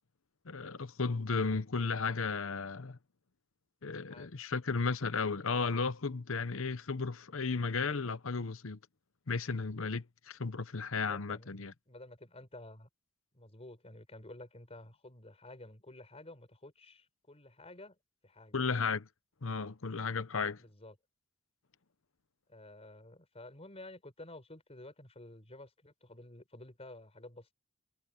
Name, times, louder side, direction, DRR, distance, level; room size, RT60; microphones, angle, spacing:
voice 1, 0.4-3.0 3.8-8.8 9.3-11.7 18.5-19.1 19.4-20.6, left 4 dB, 70° left, 0.9 m, -34 dB
voice 2, 4.1-4.4 11.1-11.5 11.9-12.9 13.3-18.0 18.2-18.5 20.6-20.9 22.5-27.5, left 1 dB, 30° left, 4.8 m, -51 dB
head